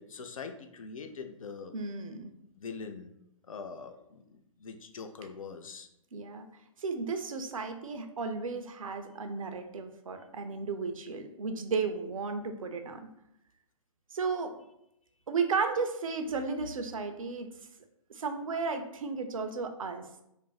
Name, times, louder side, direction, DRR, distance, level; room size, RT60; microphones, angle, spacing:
voice 1, 0.0-1.7 2.6-3.1 3.5-4.2 4.6-5.9, left 5 dB, 70° left, 7 dB, 0.4 m, -43 dB
voice 2, 1.7-2.3 6.1-6.5 6.8-13.1 14.1-14.5 15.3-17.5 18.1-20.0, right 4 dB, 70° right, 7 dB, 0.5 m, -34 dB
2.5 x 2.0 x 3.9 m, 0.81 s
figure-of-eight pair, 125°, 18 cm